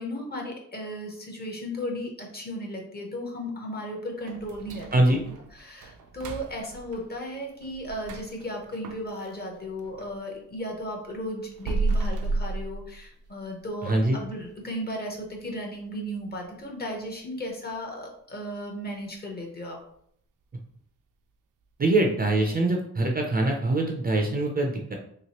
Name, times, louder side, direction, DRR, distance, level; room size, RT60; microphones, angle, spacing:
voice 1, 0.0-5.2 5.5-19.8, equal, 30° left, 0 dB, 0.7 m, -35 dB
sound 1, 4.3-10.2 10.6-13.4 13.8-13.9 14.4-14.5 15.0-15.3 15.6-15.7 16.3-16.4, right 3 dB, 85° right, 0.5 m, -34 dB
voice 2, 13.9-14.2 21.8-24.9, right 2 dB, 30° right, 1 dB, 0.4 m, -23 dB
3.1 x 2.9 x 2.9 m, 0.69 s
wide cardioid pair, 140°, 31 cm